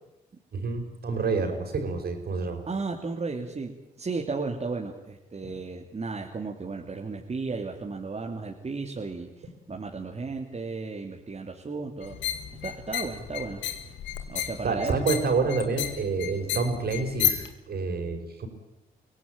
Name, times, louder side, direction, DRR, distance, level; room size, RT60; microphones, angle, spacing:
voice 1, 0.5-2.6 5.4-5.6 14.6-18.5, right 4 dB, 55° right, 5 dB, 5.3 m, -28 dB
voice 2, 2.7-3.7 4.0-9.3 9.7-12.2 12.6-13.6 14.3-14.9, right 4 dB, 35° right, 1 dB, 2.8 m, -34 dB
sound 1, 12.0-17.5, left 11 dB, 75° left, 2.0 m, -32 dB
24.5 x 17.0 x 9.1 m, 0.91 s
hypercardioid pair, 50°, 19 cm